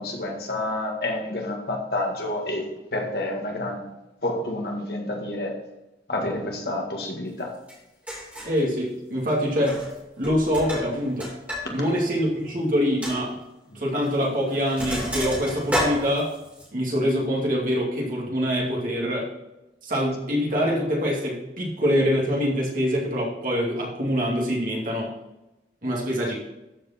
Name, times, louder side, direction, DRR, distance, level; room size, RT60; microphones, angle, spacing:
voice 1, 0.0-3.8 4.2-5.6 6.1-7.6 13.7-13.8, left 1 dB, 60° left, 1 dB, 1.8 m, -29 dB
Sink (filling or washing), 7.7-7.8 8.1-8.6 9.6-10.0 10.2-11.6 11.9-12.0 12.5-12.6 13.0-13.2 14.0-14.2 14.5-16.7, equal, 10° right, 3.0 m, -30 dB
voice 2, 8.4-9.9 10.2-11.3 11.7-13.3 13.7-16.3 16.7-19.3 19.8-25.1 25.8-26.4, equal, 50° right, -3 dB, 2.4 m, -24 dB
13.0 x 5.2 x 4.3 m, 0.96 s
head